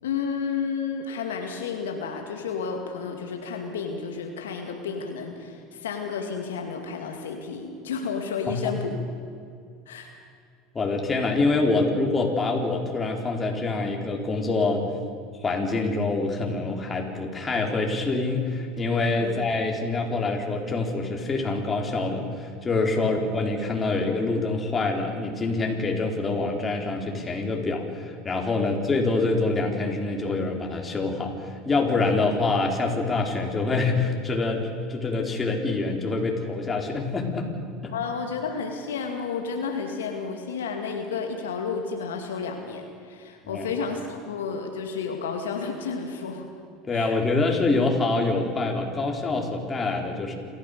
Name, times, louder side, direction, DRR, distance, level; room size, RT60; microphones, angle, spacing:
voice 1, 0.0-9.0 9.9-10.1 19.2-19.4 22.9-23.2 28.6-28.8 32.0-32.2 37.9-46.5 46.9-47.1, left 5 dB, 85° left, 3 dB, 2.3 m, -31 dB
voice 2, 8.5-8.8 10.7-14.9 15.4-37.5 37.8-37.9 43.4-43.7 46.8-50.3, left 3 dB, 25° left, 1 dB, 4.5 m, -26 dB
28.0 x 14.5 x 6.9 m, 2.3 s
hypercardioid pair, 85°, 0 cm